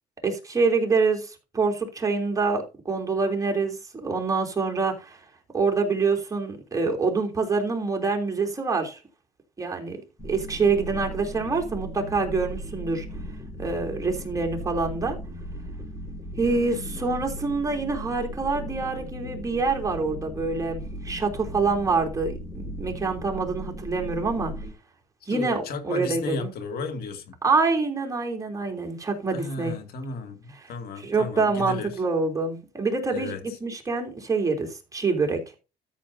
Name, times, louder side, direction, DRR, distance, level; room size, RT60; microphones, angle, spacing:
voice 1, 0.2-5.2 5.5-9.0 9.6-13.0 13.6-15.2 16.4-24.5 25.3-26.5 27.4-29.7 30.6-30.7 31.0-35.4, right 4 dB, 20° right, 3.2 m, -26 dB
sound 1, 10.2-24.7, equal, 15° left, 6.0 m, -37 dB
voice 2, 16.4-17.1 25.3-27.4 29.3-32.0 33.1-33.4, left 3 dB, 65° left, 2.4 m, -34 dB
13.5 x 7.2 x 2.7 m
cardioid pair, 110°, 17 cm